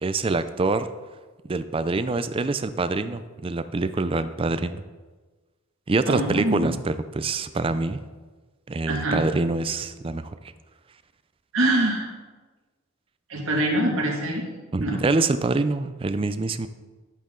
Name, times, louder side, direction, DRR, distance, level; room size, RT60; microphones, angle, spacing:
voice 1, 0.0-0.9 1.5-4.8 5.9-8.0 8.7-10.4 14.7-16.7, right 3 dB, 25° right, 12 dB, 0.4 m, -25 dB
voice 2, 6.1-6.7 8.9-9.2 11.5-12.1 13.3-14.4 14.8-15.0, right 1 dB, 65° right, -1 dB, 2.1 m, -24 dB
10.5 x 8.4 x 3.8 m, 1.3 s
head